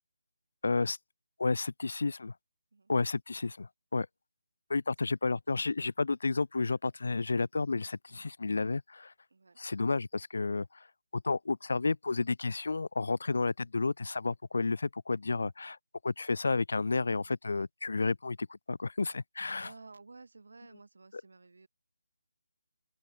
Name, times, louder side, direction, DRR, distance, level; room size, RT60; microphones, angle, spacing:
voice 1, 0.6-1.0 1.4-2.3 2.9-4.1 4.7-9.1 9.6-10.8 11.1-15.8 16.0-19.7, left 3 dB, 65° left, 0.8 m, -31 dB
voice 2, 19.6-21.7, right 3 dB, 65° right, 7.2 m, -54 dB
open air
hypercardioid pair, 175°, 0 cm